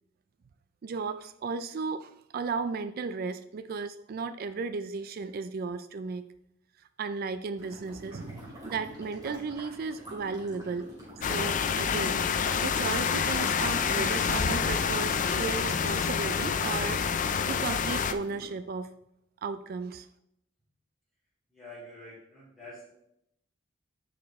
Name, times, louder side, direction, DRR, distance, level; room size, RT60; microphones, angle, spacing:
voice 1, 0.8-6.2 7.0-10.9 11.3-17.0 17.5-18.9 19.4-20.1, right 4 dB, 50° right, 12 dB, 0.4 m, -35 dB
sound 1, 7.6-18.5, equal, 20° right, 2.8 m, -47 dB
sound 2, 11.2-18.1, left 6 dB, 40° left, 0.4 m, -28 dB
voice 2, 21.5-22.9, left 1 dB, ahead, -13 dB, 2.9 m, -47 dB
10.5 x 4.9 x 3.5 m, 0.77 s
head